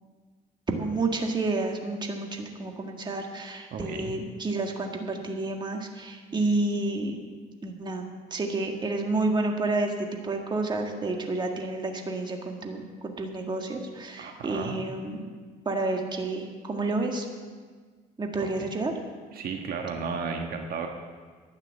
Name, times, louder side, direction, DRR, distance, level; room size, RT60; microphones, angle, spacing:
voice 1, 0.7-7.2 7.6-15.3 15.7-17.3 18.2-18.9, right 2 dB, 25° right, 2 dB, 1.8 m, -30 dB
voice 2, 3.7-4.1 14.2-14.8 18.6-18.7 19.3-20.9, right 5 dB, 60° right, 3 dB, 1.4 m, -33 dB
12.0 x 9.0 x 8.4 m, 1.5 s
cardioid pair, 110°, 17 cm